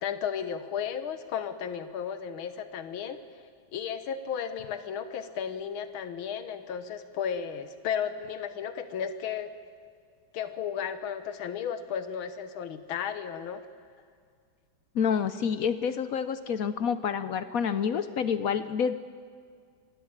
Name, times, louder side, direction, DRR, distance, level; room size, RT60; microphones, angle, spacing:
voice 1, 0.0-9.5 10.3-13.6, left 8 dB, 85° left, 11 dB, 1.9 m, -34 dB
voice 2, 14.9-18.9, left 7 dB, 65° left, 12 dB, 0.9 m, -28 dB
25.5 x 13.0 x 8.8 m, 2.1 s
omnidirectional pair, 2.2 m